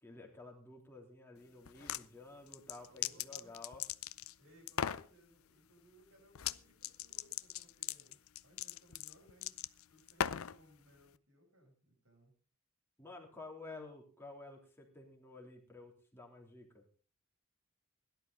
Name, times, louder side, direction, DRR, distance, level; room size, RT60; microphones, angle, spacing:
voice 1, 0.0-3.8 13.0-16.8, left 3 dB, 10° left, 0 dB, 3.3 m, -52 dB
sound 1, 1.6-2.0 2.5-4.3 4.7-5.1 6.3-6.6 6.8-10.6, left 9 dB, 80° left, 0.5 m, -38 dB
voice 2, 2.9-3.5 4.4-8.2 8.4-9.5 9.9-12.3, equal, 80° right, 1 dB, 7.3 m, -64 dB
17.0 x 11.5 x 4.1 m, 0.39 s
head